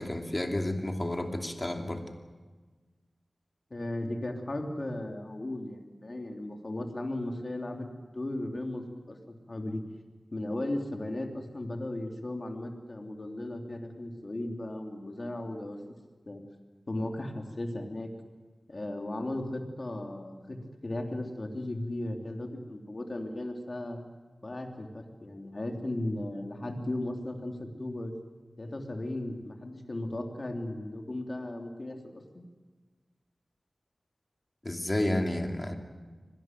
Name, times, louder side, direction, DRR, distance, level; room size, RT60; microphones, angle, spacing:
voice 1, 0.0-2.0 34.6-35.8, left 1 dB, 30° left, 4 dB, 2.7 m, -31 dB
voice 2, 3.7-9.8 10.3-15.8 16.3-16.4 16.9-18.1 18.7-20.6 20.8-24.0 24.4-28.1 28.6-32.4, left 1 dB, 45° left, 3 dB, 2.9 m, -36 dB
24.5 x 18.0 x 9.2 m, 1.4 s
wide cardioid pair, 65°, 0 cm